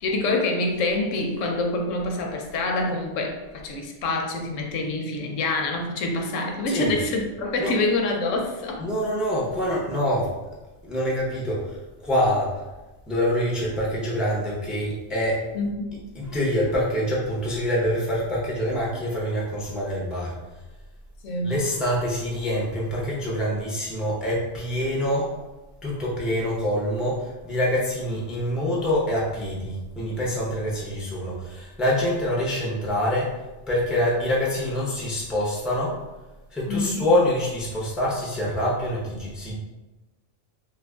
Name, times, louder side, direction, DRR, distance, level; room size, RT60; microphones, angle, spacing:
voice 1, 0.0-8.9 15.5-16.0 21.2-21.6 36.7-37.0, left 2 dB, 85° left, 2 dB, 1.0 m, -26 dB
voice 2, 8.8-10.3 10.8-12.6 13.1-15.5 16.1-20.3 21.4-25.4 25.8-33.4 33.7-36.0 36.5-39.5, equal, ahead, -5 dB, 0.5 m, -25 dB
3.0 x 2.5 x 3.4 m, 1.1 s
omnidirectional pair, 1.3 m